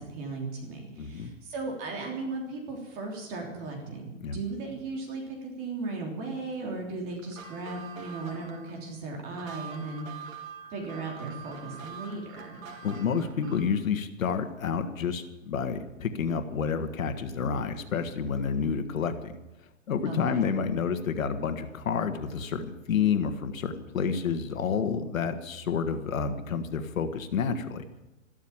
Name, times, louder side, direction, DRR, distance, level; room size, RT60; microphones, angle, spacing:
voice 1, 0.0-10.3 10.7-12.6 20.0-20.4, right 3 dB, 20° right, 0 dB, 3.2 m, -36 dB
voice 2, 1.0-1.3 4.2-4.4 12.8-19.3 19.9-27.8, left 6 dB, 80° left, 8 dB, 1.9 m, -29 dB
sound 1, 7.2-13.8, right 6 dB, 80° right, 3.5 m, -45 dB
14.0 x 13.0 x 7.3 m, 1.0 s
hypercardioid pair, 170°, 40 cm